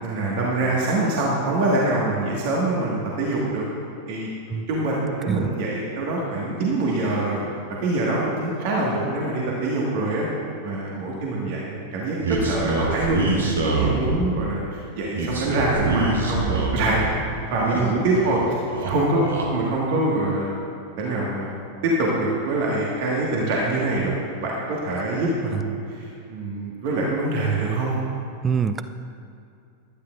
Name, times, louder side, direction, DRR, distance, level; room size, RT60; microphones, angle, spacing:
voice 1, 0.0-3.6 4.1-4.3 4.7-7.4 7.8-10.3 10.6-17.0 17.5-20.5 21.0-21.5 21.8-24.1 24.4-27.9, right 2 dB, 50° right, -4 dB, 1.7 m, -24 dB
sound 1, 12.2-14.4 15.1-17.1 17.4-18.4 18.7-19.5, right 2 dB, 70° right, 1.6 m, -25 dB
voice 2, 28.4-28.8, right 7 dB, 20° right, 10 dB, 0.4 m, -25 dB
14.5 x 12.0 x 2.5 m, 2.5 s
figure-of-eight pair, 90°, 0 cm